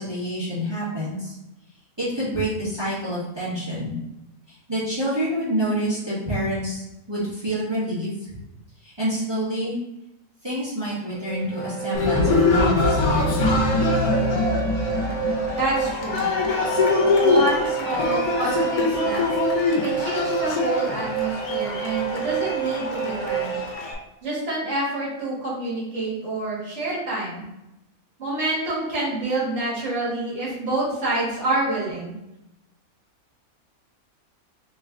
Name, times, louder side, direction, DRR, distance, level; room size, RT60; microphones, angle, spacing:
voice 1, 0.0-1.3 2.0-4.0 4.5-8.4 8.8-9.8 10.4-13.2, equal, 20° right, -10 dB, 1.2 m, -27 dB
sound 1, 11.1-23.7, right 8 dB, 15° left, 0.3 m, -29 dB
Cheering, 11.9-23.9, left 3 dB, 85° left, 1.3 m, -23 dB
Wind instrument woodwind instrument, 13.8-17.9, equal, 80° right, 1.2 m, -41 dB
voice 2, 15.6-16.3 17.2-19.2 19.8-23.6 24.2-27.5 28.2-32.1, right 2 dB, 50° right, -7 dB, 1.6 m, -27 dB
3.3 x 3.1 x 3.6 m, 0.92 s
omnidirectional pair, 1.5 m